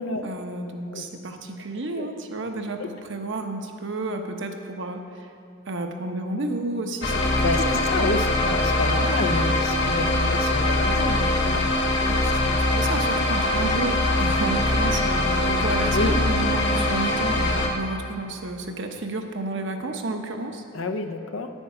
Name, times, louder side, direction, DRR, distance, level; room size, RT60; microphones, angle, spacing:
voice 1, 0.2-5.3 5.7-7.8 12.1-20.6, right 2 dB, 65° right, 4 dB, 0.9 m, -31 dB
sound 1, 7.0-17.7, left 1 dB, 60° left, 1.2 m, -22 dB
voice 2, 7.4-11.7 15.9-16.2 20.7-21.5, left 3 dB, 90° left, 6 dB, 0.7 m, -29 dB
9.1 x 9.0 x 5.6 m, 2.4 s
head